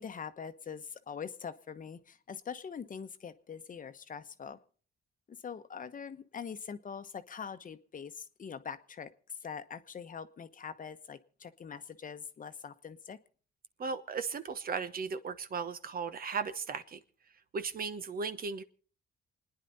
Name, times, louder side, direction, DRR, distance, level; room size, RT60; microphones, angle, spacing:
voice 1, 0.0-4.6 5.3-13.2, left 6 dB, 40° left, 11 dB, 1.0 m, -43 dB
voice 2, 13.8-17.0 17.5-18.6, right 5 dB, 45° right, 11 dB, 1.1 m, -36 dB
28.0 x 10.0 x 4.1 m, 0.43 s
cardioid pair, 90°, 20 cm